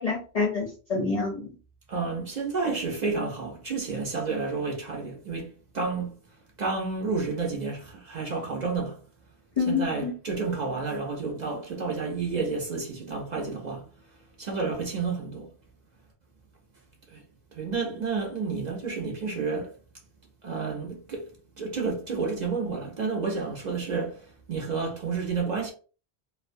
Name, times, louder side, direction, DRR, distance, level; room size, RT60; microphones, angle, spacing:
voice 1, 0.0-1.5 9.6-10.1, left 4 dB, 50° left, 0.5 m, -27 dB
voice 2, 1.9-6.1 6.6-9.0 9.7-13.9 14.4-15.5 17.1-17.2 17.5-19.7 20.4-21.3 21.6-25.7, right 4 dB, 50° right, 0.6 m, -30 dB
2.3 x 2.2 x 2.5 m
omnidirectional pair, 1.1 m